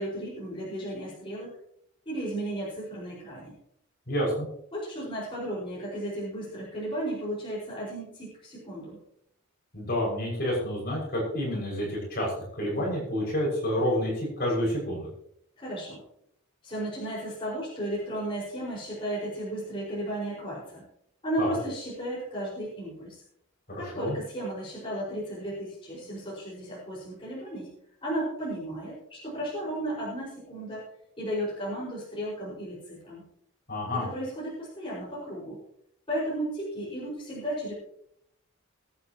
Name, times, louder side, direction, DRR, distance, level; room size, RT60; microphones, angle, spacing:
voice 1, 0.0-1.5 2.1-3.5 4.7-9.0 15.6-16.0 16.6-20.9 21.2-23.2 23.8-27.7 28.0-30.8 31.2-33.2 33.9-35.6 36.1-37.7, right 1 dB, 25° left, -7 dB, 5.3 m, -34 dB
voice 2, 4.1-4.5 9.7-15.1 21.4-21.6 23.7-24.1 33.7-34.0, equal, 45° left, -4 dB, 6.2 m, -29 dB
22.5 x 8.9 x 3.0 m, 0.71 s
head